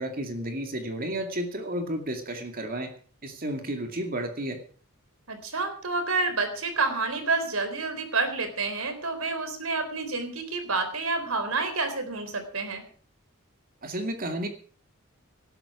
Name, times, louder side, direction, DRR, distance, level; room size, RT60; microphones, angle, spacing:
voice 1, 0.0-2.9 3.2-4.6 13.8-14.5, right 1 dB, 40° right, 5 dB, 2.3 m, -32 dB
voice 2, 5.3-12.8, right 3 dB, 80° right, 8 dB, 4.0 m, -29 dB
19.0 x 12.0 x 5.0 m, 0.43 s
head